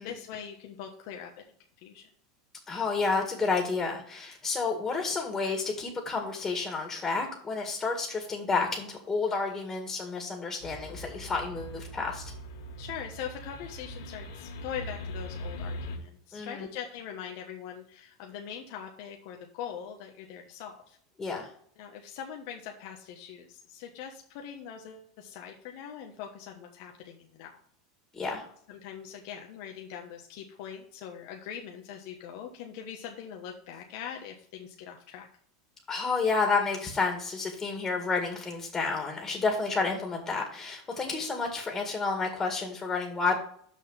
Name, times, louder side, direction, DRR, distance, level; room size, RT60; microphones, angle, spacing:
voice 1, 0.0-1.4 1.8-2.1 12.8-21.0 21.8-27.6 28.7-35.3, left 8 dB, 65° left, 2 dB, 1.2 m, -42 dB
voice 2, 2.7-12.2 16.3-16.7 21.2-21.5 28.1-28.5 35.9-43.4, left 4 dB, 20° left, 2 dB, 2.1 m, -30 dB
sound 1, 10.6-16.0, equal, 85° left, 2.3 m, -41 dB
6.4 x 6.1 x 5.8 m, 0.62 s
supercardioid pair, 120°, 2 cm